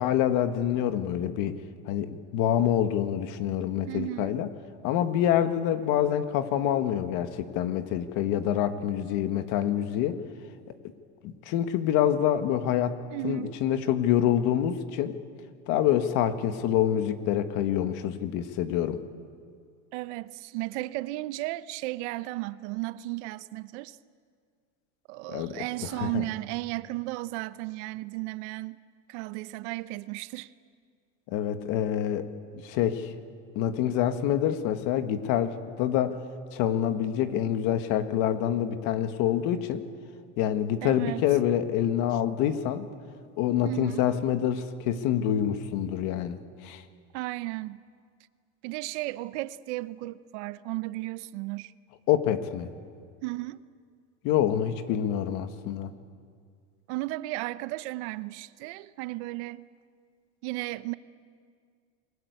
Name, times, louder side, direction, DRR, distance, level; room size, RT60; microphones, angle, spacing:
voice 1, 0.0-1.6 1.9-4.5 4.8-10.2 11.2-13.0 13.2-15.2 15.7-19.0 25.3-25.6 25.8-26.3 31.3-32.3 32.6-33.1 33.6-36.2 36.5-39.8 40.4-42.9 43.4-46.8 52.1-52.7 54.2-55.9, left 10 dB, 55° left, 1.8 m, -26 dB
voice 2, 3.9-4.3 13.1-13.5 19.9-24.0 25.1-28.8 29.1-30.5 40.8-41.2 43.6-44.1 47.1-47.8 48.6-51.7 53.2-53.6 56.9-59.7 60.4-60.9, right 19 dB, 65° right, 0.9 m, -34 dB
28.5 x 21.5 x 8.3 m
supercardioid pair, 140°, 36 cm